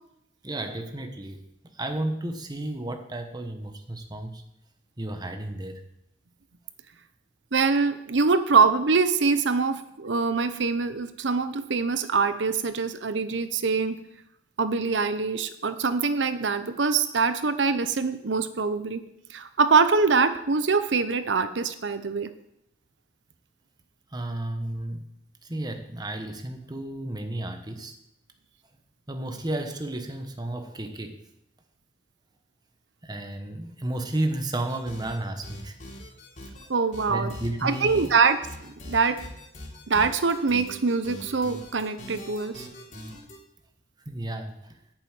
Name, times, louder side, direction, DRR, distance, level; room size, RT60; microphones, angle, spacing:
voice 1, 0.4-1.4 1.7-4.4 5.0-5.8 24.1-25.0 25.4-27.9 29.1-31.2 33.0-35.8 37.1-38.1 44.1-44.7, right 1 dB, 25° right, 6 dB, 1.2 m, -32 dB
voice 2, 7.5-14.0 14.6-19.0 19.3-22.3 36.7-37.3 37.6-38.4 38.9-39.2 39.9-42.7, right 4 dB, 80° right, 11 dB, 0.8 m, -24 dB
sound 1, 34.7-35.2 35.4-36.7 36.9-43.4, left 1 dB, 45° left, 3.2 m, -42 dB
9.7 x 7.1 x 8.9 m, 0.80 s
head